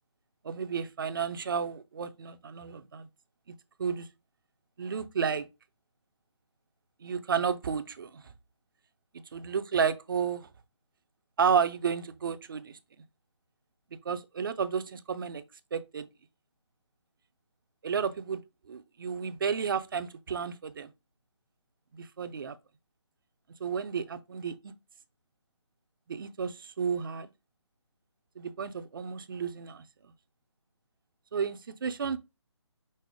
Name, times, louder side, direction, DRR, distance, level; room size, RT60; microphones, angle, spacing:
voice 1, 0.4-3.1 3.8-4.1 4.8-5.5 7.0-8.2 9.3-10.5 11.4-12.8 14.0-15.4 15.7-16.1 17.8-18.4 18.7-20.9 21.9-22.6 23.6-24.7 26.1-27.3 28.4-29.8 31.3-32.2, right 6 dB, 45° right, 0.5 m, -32 dB
5.4 x 2.1 x 4.8 m
figure-of-eight pair, 155°, 15 cm